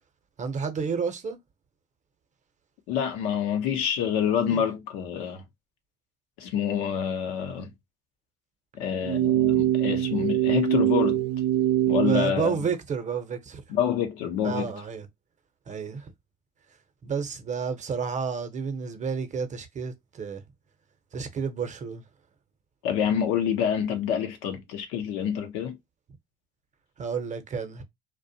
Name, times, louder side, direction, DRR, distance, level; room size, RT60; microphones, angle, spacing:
voice 1, 0.4-1.4 4.5-4.6 12.1-13.6 14.4-15.1 15.7-16.1 17.0-20.4 21.1-22.0 27.0-27.8, right 6 dB, 35° right, 0.7 m, -31 dB
voice 2, 2.9-5.4 6.4-7.7 8.8-11.3 11.9-12.6 13.7-14.7 22.8-25.8, left 8 dB, 75° left, 0.7 m, -27 dB
sound 1, 9.0-12.3, right 12 dB, 80° right, 0.4 m, -23 dB
2.4 x 2.1 x 2.7 m
hypercardioid pair, 65°, 20 cm